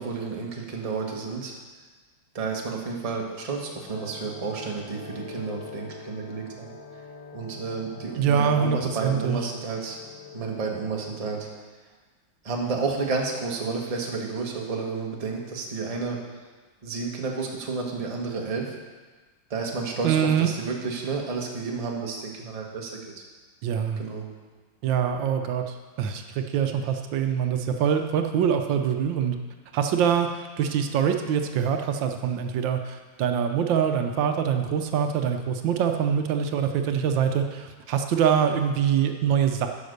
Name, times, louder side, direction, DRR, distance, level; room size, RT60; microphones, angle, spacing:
voice 1, 0.0-1.5 2.3-6.7 7.3-10.0 10.3-11.5 12.4-16.2 16.8-18.7 19.5-23.2 24.0-24.3, right 4 dB, 25° right, 0 dB, 1.0 m, -31 dB
sound 1, 3.9-11.5, left 5 dB, 75° left, 2.5 m, -44 dB
voice 2, 8.2-9.4 20.0-20.5 23.6-24.0 24.8-29.4 29.7-39.7, right 8 dB, 75° right, 5 dB, 1.3 m, -24 dB
9.5 x 5.9 x 6.5 m, 1.3 s
omnidirectional pair, 2.1 m